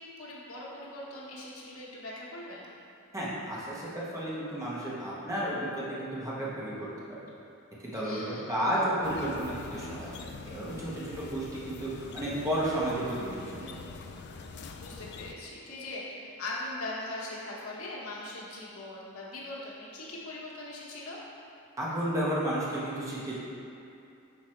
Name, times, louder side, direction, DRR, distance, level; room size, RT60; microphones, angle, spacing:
voice 1, 0.0-2.7 7.9-8.4 14.7-21.2, left 2 dB, 85° left, -5 dB, 1.1 m, -40 dB
voice 2, 3.1-6.9 7.8-8.2 8.5-10.1 10.5-13.7 21.8-23.3, right 1 dB, 15° right, -7 dB, 1.2 m, -32 dB
sound 1, 9.0-15.3, left 4 dB, 50° left, 0.4 m, -44 dB
6.3 x 4.0 x 4.4 m, 2.7 s
head